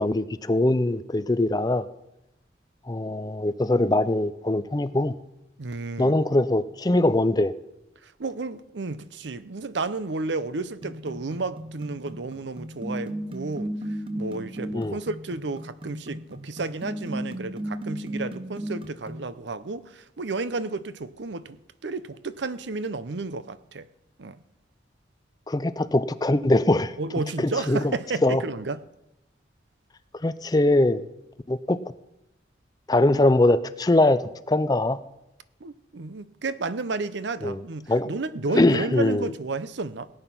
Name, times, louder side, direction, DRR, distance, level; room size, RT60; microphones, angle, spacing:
voice 1, 0.0-1.9 2.9-5.2 6.0-7.5 14.7-15.0 25.5-26.9 27.4-27.9 28.2-28.4 30.2-31.0 31.5-31.8 32.9-35.0 37.4-37.6 37.9-38.1 38.5-39.3, left 2 dB, 20° left, 0.4 m, -22 dB
voice 2, 5.6-6.1 8.0-23.9 24.2-24.4 27.0-28.8 35.6-40.1, right 3 dB, 80° right, 0.7 m, -32 dB
sound 1, 10.8-19.3, right 1 dB, 30° right, 0.9 m, -35 dB
18.0 x 8.9 x 6.0 m
head